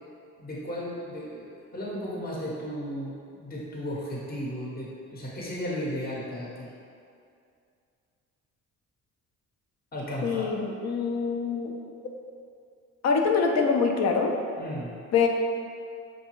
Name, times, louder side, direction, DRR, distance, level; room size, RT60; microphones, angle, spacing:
voice 1, 0.4-6.7 9.9-10.5 14.6-15.0, equal, 30° left, -5 dB, 0.8 m, -35 dB
voice 2, 10.2-11.8 13.0-14.3 15.1-15.3, left 5 dB, 60° left, 2 dB, 0.5 m, -24 dB
6.0 x 2.2 x 3.0 m, 2.4 s
cardioid pair, 90°, 30 cm